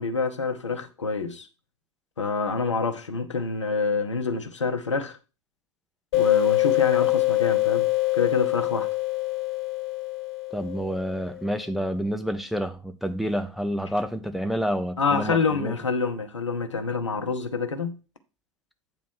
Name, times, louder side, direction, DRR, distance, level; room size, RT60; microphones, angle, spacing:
voice 1, 0.0-1.5 2.2-5.2 6.1-7.9 8.1-8.9 15.0-18.0, left 4 dB, 80° left, 0.8 m, -27 dB
sound 1, 6.1-11.4, left 20 dB, 55° left, 1.5 m, -24 dB
voice 2, 10.5-15.7, equal, ahead, 0.6 m, -29 dB
8.7 x 3.1 x 6.1 m
figure-of-eight pair, 80°, 15 cm